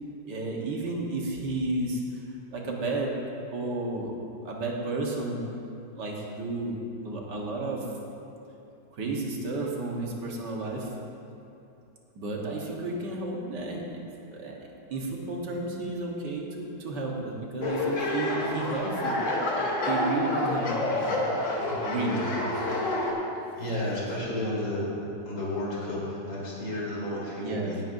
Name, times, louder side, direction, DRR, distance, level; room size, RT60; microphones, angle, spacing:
voice 1, 0.3-2.2 2.5-3.1 3.5-4.1 4.4-5.5 6.0-6.8 7.0-7.9 8.9-10.9 12.2-14.0 14.3-14.6 14.9-19.2 19.9-21.2 21.6-22.7 27.4-27.8, right 2 dB, 65° right, -1 dB, 1.9 m, -32 dB
sound 1, 17.6-23.1, left 1 dB, 45° left, 1.4 m, -28 dB
voice 2, 23.6-24.9 25.2-27.8, left 1 dB, 85° left, -6 dB, 3.7 m, -32 dB
18.0 x 9.3 x 2.6 m, 2.7 s
omnidirectional pair, 2.0 m